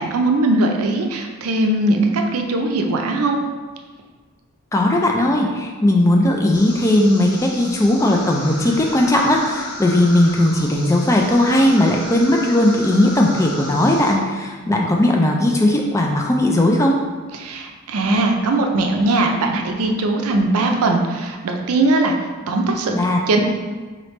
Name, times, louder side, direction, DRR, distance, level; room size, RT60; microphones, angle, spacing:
voice 1, 0.0-3.4 17.3-22.1 22.5-23.0 23.3-23.4, right 2 dB, 80° right, 3 dB, 0.5 m, -19 dB
voice 2, 4.7-17.0 22.9-23.2, left 1 dB, 15° left, 0 dB, 0.3 m, -17 dB
sound 1, 6.5-14.1, left 1 dB, 80° left, 1.0 m, -34 dB
3.8 x 3.3 x 3.1 m, 1.4 s
head